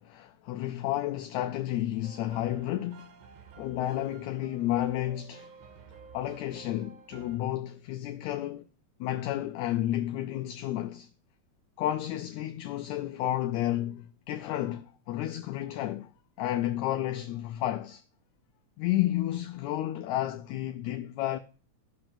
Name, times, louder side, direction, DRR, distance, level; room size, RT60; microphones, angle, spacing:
voice 1, 0.0-3.1 3.6-5.5 6.1-8.7 9.0-11.1 11.8-16.1 16.4-18.0 18.8-21.4, left 13 dB, 80° left, 1.8 m, -31 dB
sound 1, 2.0-7.4, right 5 dB, 80° right, 2.5 m, -52 dB
16.5 x 5.8 x 2.6 m
omnidirectional pair, 3.4 m